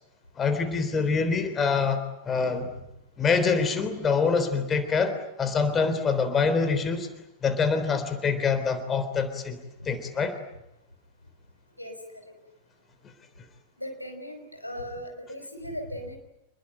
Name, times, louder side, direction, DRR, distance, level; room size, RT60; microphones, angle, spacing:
voice 1, 0.4-2.7 3.2-7.1 7.4-9.6 9.9-10.4, left 5 dB, 20° left, 10 dB, 3.5 m, -25 dB
voice 2, 13.8-16.2, equal, 90° left, 4 dB, 5.4 m, -37 dB
28.5 x 21.5 x 9.0 m, 0.86 s
figure-of-eight pair, 90°, 0 cm